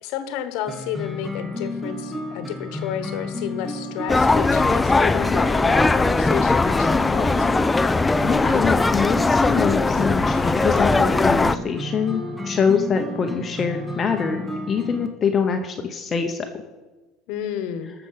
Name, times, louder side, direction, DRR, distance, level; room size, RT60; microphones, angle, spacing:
voice 1, 0.0-7.5 17.3-17.9, left 9 dB, 70° left, 10 dB, 1.2 m, -31 dB
sound 1, 0.7-15.1, left 1 dB, 5° right, 1.3 m, -32 dB
sound 2, 4.1-11.6, left 3 dB, 15° left, 0.4 m, -19 dB
voice 2, 8.2-16.5, left 6 dB, 30° left, 5 dB, 0.9 m, -24 dB
13.5 x 6.8 x 5.7 m, 1.2 s
supercardioid pair, 120°, 0 cm